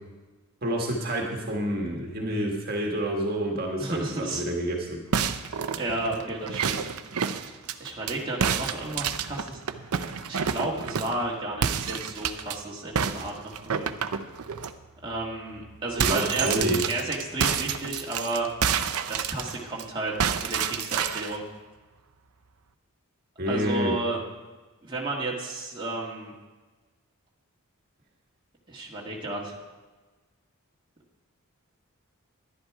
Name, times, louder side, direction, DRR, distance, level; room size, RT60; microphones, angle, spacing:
voice 1, 0.6-5.0 16.0-17.0 23.4-23.9, right 1 dB, 45° right, 0 dB, 1.6 m, -28 dB
voice 2, 3.8-4.4 5.4-5.5 5.8-6.8 7.8-9.6 10.3-13.9 15.0-18.5 19.1-21.4 23.5-24.2 24.8-26.3 28.7-29.5, right 2 dB, 20° right, -4 dB, 1.7 m, -32 dB
sound 1, 5.1-8.1 8.4-11.2 11.6-12.6 13.0-14.7 15.1-15.3 15.6-19.8 20.2-21.4, right 7 dB, 75° right, 0.6 m, -29 dB
11.5 x 11.0 x 4.8 m, 1.3 s
head